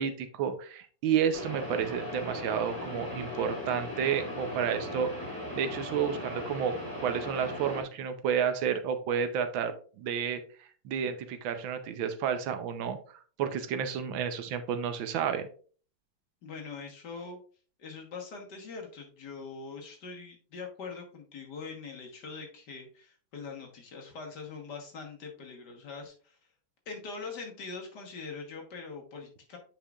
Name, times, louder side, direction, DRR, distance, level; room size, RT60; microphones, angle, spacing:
voice 1, 0.0-5.1 5.5-10.4 10.8-13.0 13.4-15.5, right 7 dB, 80° right, 8 dB, 1.5 m, -31 dB
sound 1, 1.3-7.8, left 1 dB, 10° left, 1.7 m, -38 dB
voice 2, 16.4-17.4 17.8-26.4 26.9-29.6, left 4 dB, 60° left, 1 dB, 1.8 m, -43 dB
8.8 x 5.0 x 2.4 m, 0.41 s
omnidirectional pair, 2.1 m